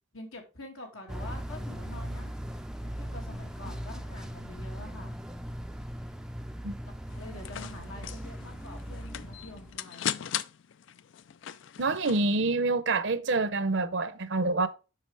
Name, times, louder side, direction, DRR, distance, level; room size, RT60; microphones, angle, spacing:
voice 1, 0.1-2.3 2.8-5.2 6.6-10.0, left 2 dB, 90° left, 2.4 m, -46 dB
sound 1, 1.1-9.8, equal, 5° right, 0.4 m, -39 dB
sound 2, 7.1-12.4, left 10 dB, 65° left, 0.4 m, -39 dB
voice 2, 11.8-14.7, right 3 dB, 60° right, 0.7 m, -27 dB
7.6 x 5.9 x 3.4 m
head